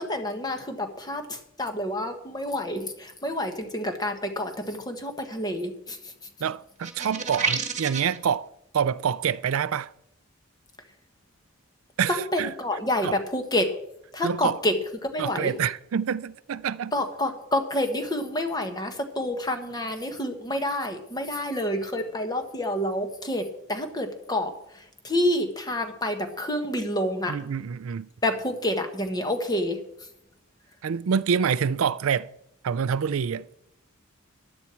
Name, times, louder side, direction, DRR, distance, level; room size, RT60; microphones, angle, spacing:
voice 1, 0.0-6.1 12.1-13.7 14.1-14.8 15.0-15.5 16.9-27.4 28.2-29.8, left 1 dB, 20° left, 1.4 m, -28 dB
voice 2, 6.4-8.5 8.7-9.9 12.0-12.5 13.0-13.2 14.2-14.6 15.2-16.9 27.3-28.1 30.8-32.3 32.6-33.5, right 7 dB, 80° right, 0.4 m, -26 dB
sound 1, 6.8-8.2, right 5 dB, 35° right, 1.5 m, -29 dB
15.5 x 11.0 x 4.5 m
head